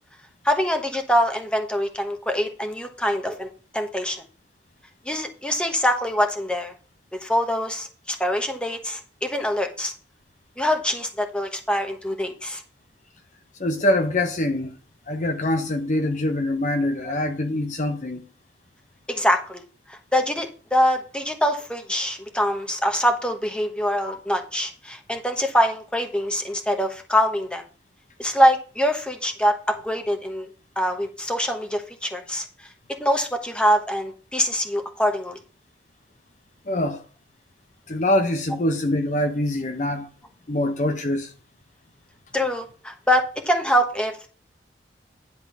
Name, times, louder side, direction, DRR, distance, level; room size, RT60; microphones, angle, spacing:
voice 1, 0.4-3.5 3.7-4.2 5.1-6.7 7.1-9.9 10.6-12.6 17.0-17.1 19.1-19.6 19.9-27.6 28.2-30.5 30.8-32.5 33.0-35.4 42.3-44.2, equal, 5° left, 1.1 m, -24 dB
voice 2, 13.6-14.8 15.1-18.2 24.1-24.2 36.7-37.0 37.9-40.1 40.5-41.3, left 1 dB, 40° left, 0.8 m, -24 dB
10.5 x 3.7 x 7.1 m
head